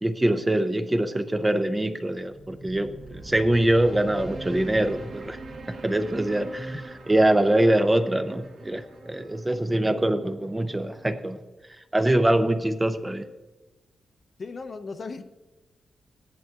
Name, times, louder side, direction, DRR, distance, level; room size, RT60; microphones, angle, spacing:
voice 1, 0.0-5.4 5.7-11.4 11.9-13.2, right 1 dB, 15° right, 8 dB, 0.5 m, -24 dB
sound 1, 2.1-11.1, right 2 dB, 60° right, 1.4 m, -43 dB
voice 2, 14.4-15.2, left 4 dB, 40° left, 8 dB, 0.6 m, -36 dB
15.5 x 10.5 x 2.4 m, 1.1 s
wide cardioid pair, 140°, 0 cm